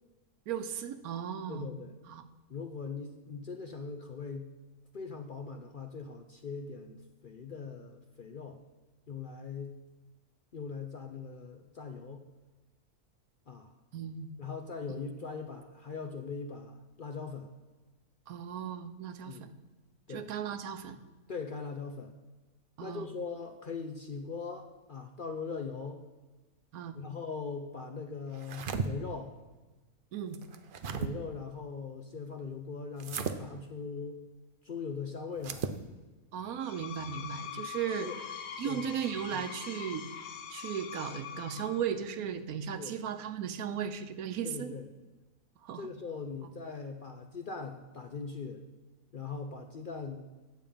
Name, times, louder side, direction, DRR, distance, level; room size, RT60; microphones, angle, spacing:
voice 1, 0.5-1.7 2.1-2.2 13.9-14.3 18.3-19.4 20.1-21.0 22.8-23.1 26.7-27.0 30.1-30.4 36.3-38.1 38.6-40.0 40.5-44.7 45.6-45.9, right 8 dB, 80° right, 10 dB, 1.2 m, -36 dB
voice 2, 1.5-2.0 2.5-4.5 4.9-8.6 9.1-9.8 10.5-12.3 13.5-13.7 14.4-17.5 19.3-19.5 20.1-20.3 21.3-22.1 22.8-26.0 26.9-29.3 31.0-34.2 34.6-35.7 37.5-37.7 38.0-38.2 38.6-38.8 39.3-39.4 42.8-43.0 44.4-44.9 45.8-48.6 49.1-50.3, left 5 dB, 50° left, 4 dB, 0.6 m, -40 dB
sound 1, 28.3-28.9 30.3-31.1 33.0-33.4 35.4-35.8, right 5 dB, 55° right, 0.6 m, -35 dB
Screech, 36.5-42.0, left 8 dB, 70° left, 1.2 m, -43 dB
9.1 x 7.4 x 5.1 m, 1.2 s
omnidirectional pair, 1.5 m